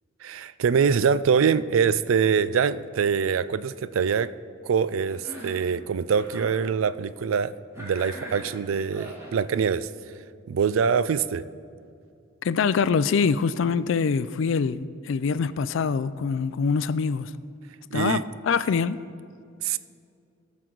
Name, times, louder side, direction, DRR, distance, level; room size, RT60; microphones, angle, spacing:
voice 1, 0.2-4.3 4.6-9.9 10.5-11.4 17.9-18.2 19.6-19.8, right 6 dB, 85° right, 0.4 m, -24 dB
Cough, 5.1-5.7 6.1-6.6 7.7-9.4, equal, 15° right, 1.9 m, -41 dB
voice 2, 12.4-17.3 17.9-19.0, left 5 dB, 65° left, 0.4 m, -24 dB
18.0 x 6.1 x 3.9 m
head